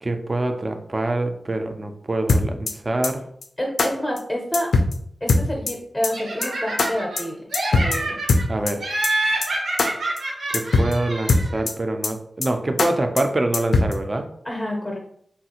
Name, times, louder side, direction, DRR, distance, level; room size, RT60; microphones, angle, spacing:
voice 1, 0.0-3.3 8.5-8.9 10.5-14.3, right 2 dB, 30° right, 5 dB, 0.4 m, -25 dB
sound 1, 2.3-2.7 3.0-3.1 3.4-3.5 3.8-3.9 4.2-4.3 4.5-4.9 5.3-5.7 6.0-6.1 6.4-6.5 6.8-6.9 7.2-7.3 7.5-8.0 8.3-8.7 9.0-9.1 9.4-9.5 9.8-9.9 10.2-10.3 10.5-10.9 11.3-11.7 12.0-12.1 12.4-12.5 12.8-12.9 13.2-13.3 13.5-13.9, left 3 dB, 85° left, 0.4 m, -19 dB
voice 2, 3.6-4.7 5.2-8.2 14.4-15.0, equal, 10° left, -1 dB, 0.6 m, -28 dB
Laughter, 6.1-7.2 7.5-8.4 8.8-11.6, right 2 dB, 85° right, 0.7 m, -27 dB
3.3 x 2.4 x 2.8 m, 0.68 s
wide cardioid pair, 105°, 0 cm